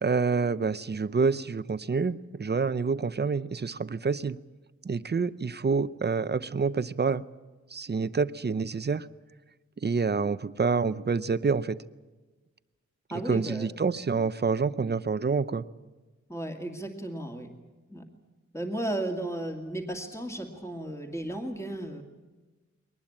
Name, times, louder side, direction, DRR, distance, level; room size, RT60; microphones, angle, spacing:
voice 1, 0.0-4.4 4.8-7.2 7.7-9.0 9.8-11.8 13.3-15.6, right 4 dB, 35° right, 14 dB, 0.7 m, -27 dB
voice 2, 13.1-13.7 16.3-17.5 17.9-18.1 18.5-22.0, right 1 dB, 10° left, 3 dB, 2.3 m, -34 dB
22.5 x 19.5 x 8.7 m, 1.2 s
wide cardioid pair, 105°, 29 cm